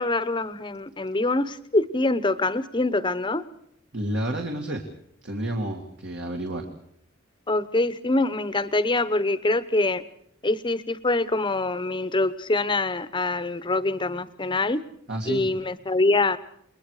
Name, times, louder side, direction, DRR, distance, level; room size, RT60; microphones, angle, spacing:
voice 1, 0.0-3.4 7.5-10.0 10.4-14.8 15.3-16.4, left 2 dB, 25° left, 14 dB, 1.0 m, -24 dB
voice 2, 3.9-4.8 5.2-6.7 15.1-15.5, right 1 dB, 60° right, 2 dB, 2.2 m, -30 dB
29.5 x 21.5 x 4.9 m, 0.69 s
head